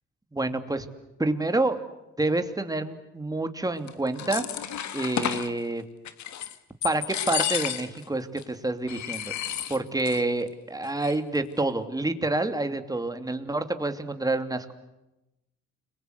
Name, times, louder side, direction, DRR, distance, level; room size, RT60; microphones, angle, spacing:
voice 1, 0.3-0.9 1.2-1.8 2.2-4.4 4.9-5.8 6.8-9.3 9.7-14.7, right 2 dB, 10° right, 8 dB, 2.8 m, -28 dB
sound 1, 3.9-5.5 6.0-6.6 6.8-8.0 8.4-8.5 8.9-10.2 10.5-10.6 10.8-11.4, left 10 dB, 70° left, 2.0 m, -31 dB
30.0 x 23.0 x 8.2 m, 0.94 s
cardioid pair, 90°, 30 cm